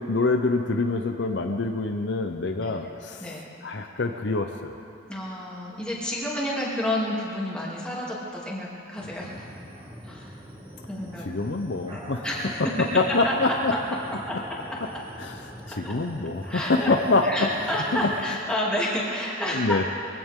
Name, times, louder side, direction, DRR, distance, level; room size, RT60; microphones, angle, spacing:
voice 1, 0.0-3.3 3.6-4.8 11.3-12.2 12.9-13.7 14.3-14.4 15.2-15.3 15.7-17.3 18.0-18.1 19.5-19.8, left 3 dB, 60° left, 5 dB, 0.7 m, -25 dB
voice 2, 5.1-9.5 10.0-10.4 10.9-11.5 11.8-12.9 13.2-13.5 14.3-14.4 14.7-15.0 15.7-15.9 16.4-16.9 17.2-19.9, left 1 dB, 5° left, -6 dB, 2.8 m, -30 dB
sound 1, 9.0-18.5, equal, 25° right, 2.1 m, -43 dB
23.0 x 16.0 x 3.7 m, 2.7 s
head